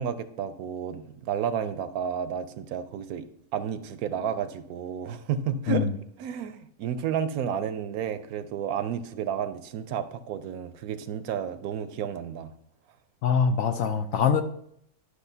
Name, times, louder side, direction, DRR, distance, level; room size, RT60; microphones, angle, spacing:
voice 1, 0.0-5.9 6.2-12.5, right 8 dB, 75° right, 12 dB, 1.0 m, -31 dB
voice 2, 13.2-14.4, left 6 dB, 70° left, 9 dB, 0.9 m, -23 dB
11.5 x 6.3 x 2.7 m, 0.69 s
omnidirectional pair, 1.6 m